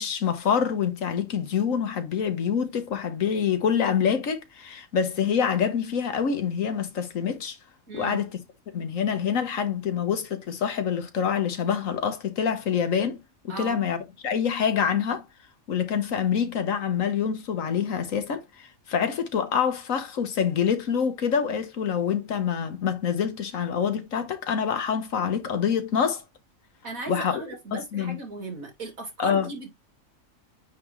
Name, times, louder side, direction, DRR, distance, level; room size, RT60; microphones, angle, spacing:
voice 1, 0.0-7.6 7.9-8.4 8.7-13.2 13.4-15.2 15.7-26.2 27.1-27.4 27.7-28.2 29.2-29.5, left 7 dB, 70° left, 1.5 m, -26 dB
voice 2, 7.9-8.2 13.5-13.8 26.8-29.7, right 2 dB, 85° right, 2.9 m, -36 dB
9.3 x 3.6 x 3.1 m
omnidirectional pair, 1.4 m